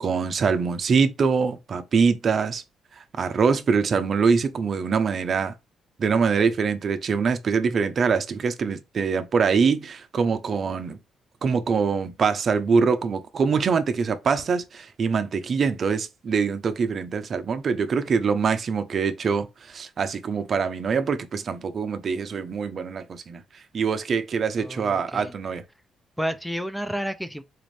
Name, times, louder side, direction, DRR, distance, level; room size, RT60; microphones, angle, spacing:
voice 1, 0.0-2.6 3.2-5.5 6.0-11.0 11.4-25.6, right 5 dB, 50° right, 0.6 m, -24 dB
voice 2, 24.6-25.3 26.2-27.4, equal, ahead, 0.4 m, -31 dB
4.0 x 2.6 x 3.2 m
cardioid pair, 90°, 0 cm